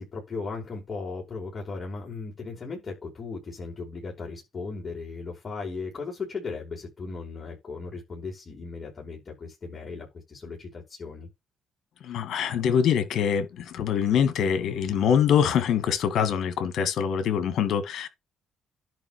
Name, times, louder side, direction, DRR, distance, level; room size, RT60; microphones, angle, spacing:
voice 1, 0.0-11.3, left 4 dB, 35° left, 5.4 m, -37 dB
voice 2, 12.0-18.1, left 8 dB, 75° left, 2.2 m, -24 dB
10.5 x 3.6 x 6.8 m
cardioid pair, 90°, 0 cm